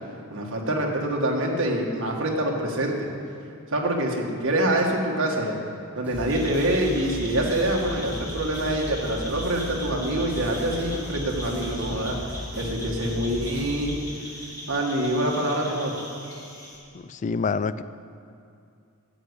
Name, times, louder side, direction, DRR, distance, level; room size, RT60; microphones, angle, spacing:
voice 1, 0.3-3.1 3.7-5.6 6.0-12.2 12.6-14.0 14.7-15.9, right 1 dB, 60° right, -1 dB, 1.8 m, -25 dB
sound 1, 6.0-13.9, equal, 5° right, 2.8 m, -36 dB
sound 2, 6.3-16.8, equal, 15° left, 2.2 m, -40 dB
voice 2, 16.9-17.8, left 5 dB, 35° left, 15 dB, 0.3 m, -27 dB
10.0 x 8.5 x 8.1 m, 2.5 s
head